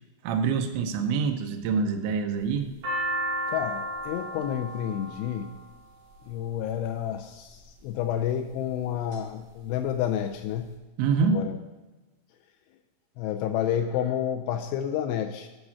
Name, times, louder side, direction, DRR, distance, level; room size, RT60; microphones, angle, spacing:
voice 1, 0.2-2.7 11.0-11.5, right 5 dB, 80° right, 5 dB, 3.0 m, -26 dB
sound 1, 2.4-6.6 7.5-7.9 8.5-9.2 9.5-9.6 9.8-10.6, right 1 dB, 45° right, 3.5 m, -33 dB
voice 2, 3.5-5.5 6.3-10.7 11.3-11.5 13.2-15.5, left 10 dB, 85° left, 5 dB, 2.4 m, -30 dB
11.5 x 5.4 x 7.1 m, 1.1 s
omnidirectional pair, 5.4 m